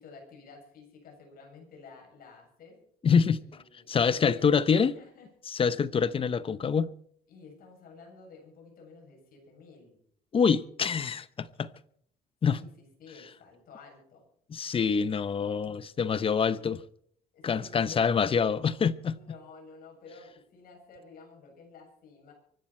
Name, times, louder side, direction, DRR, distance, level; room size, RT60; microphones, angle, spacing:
voice 1, 0.0-2.8 3.2-5.3 7.3-10.0 12.5-12.7 13.0-14.2 14.9-15.2 17.3-18.1 19.1-22.3, left 4 dB, 60° left, 7.6 m, -52 dB
voice 2, 3.0-3.4 3.9-5.0 5.5-6.9 10.3-11.7 12.4-12.6 14.5-16.8 17.4-19.2, left 6 dB, 35° left, 0.8 m, -26 dB
24.5 x 12.0 x 4.5 m
cardioid pair, 110°, 17 cm